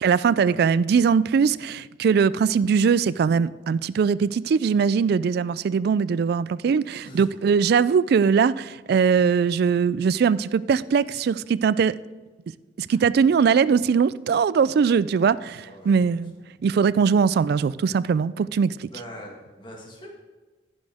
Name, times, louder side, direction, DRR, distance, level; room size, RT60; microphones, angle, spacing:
voice 1, 0.0-12.0 12.8-16.3 16.6-18.9, right 6 dB, 60° right, 0.3 m, -21 dB
voice 2, 7.1-7.4 12.9-13.0 15.6-16.2 18.9-20.1, equal, 30° left, 1.7 m, -43 dB
11.5 x 10.5 x 3.5 m
head